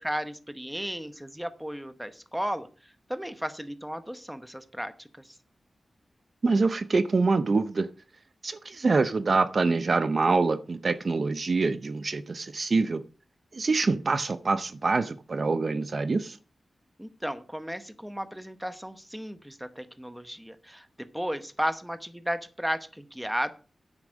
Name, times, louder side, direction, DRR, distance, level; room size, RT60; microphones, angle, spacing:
voice 1, 0.0-2.7 3.1-5.4 17.0-23.5, equal, 5° right, 0.9 m, -34 dB
voice 2, 6.4-7.9 8.4-13.0 13.5-16.4, right 3 dB, 45° right, 0.6 m, -25 dB
9.8 x 8.3 x 5.2 m
wide cardioid pair, 130°, 0 cm